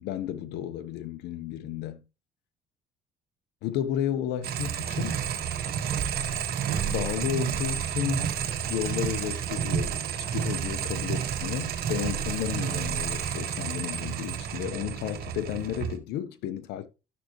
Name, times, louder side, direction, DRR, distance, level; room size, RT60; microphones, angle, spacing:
voice 1, 0.0-2.0 3.6-5.2 6.9-8.3 8.7-16.9, left 11 dB, 85° left, 1.1 m, -32 dB
sound 1, 4.4-16.0, right 8 dB, 65° right, 1.6 m, -30 dB
11.5 x 6.5 x 3.1 m
cardioid pair, 110°, 17 cm